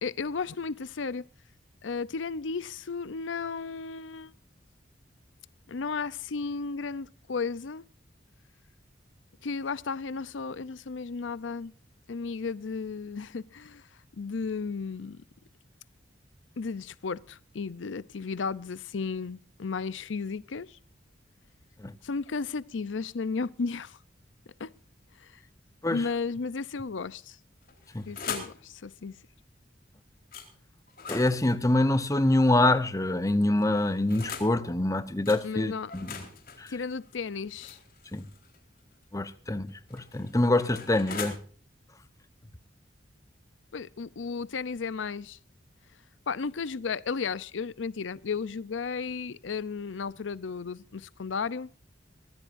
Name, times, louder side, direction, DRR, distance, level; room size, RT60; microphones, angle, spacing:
voice 1, 0.0-1.3 1.8-4.3 5.7-7.8 9.4-11.7 12.1-13.8 14.2-15.2 16.6-20.8 22.0-24.0 24.6-24.7 25.2-25.4 25.9-27.4 28.1-29.2 35.4-35.9 36.7-37.8 43.7-45.4 46.3-51.7, left 5 dB, 90° left, 0.6 m, -34 dB
sound 1, 27.6-28.6 30.3-30.5 30.9-32.8 33.6-34.5 35.3-35.4 35.9-38.6 39.7-41.3, left 6 dB, 50° left, 4.1 m, -41 dB
voice 2, 31.1-36.2 36.6-36.7 38.1-38.3 39.1-41.4, left 2 dB, 20° left, 0.9 m, -25 dB
23.5 x 15.5 x 2.6 m
head